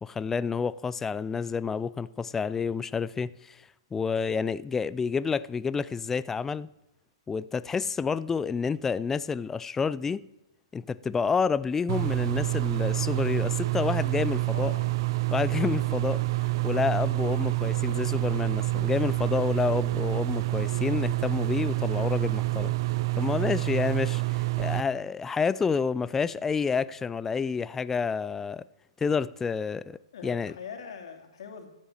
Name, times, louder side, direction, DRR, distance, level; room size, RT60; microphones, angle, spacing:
voice 1, 0.0-3.6 3.9-6.7 7.3-10.3 10.7-14.7 15.3-22.7 23.2-28.6 29.0-30.5, left 5 dB, 10° left, 0.4 m, -29 dB
sound 1, 11.9-24.8, right 21 dB, 50° right, 0.6 m, -27 dB
voice 2, 14.5-14.9 30.1-31.7, left 7 dB, 65° left, 2.7 m, -42 dB
14.0 x 7.4 x 9.0 m
hypercardioid pair, 125°, 3 cm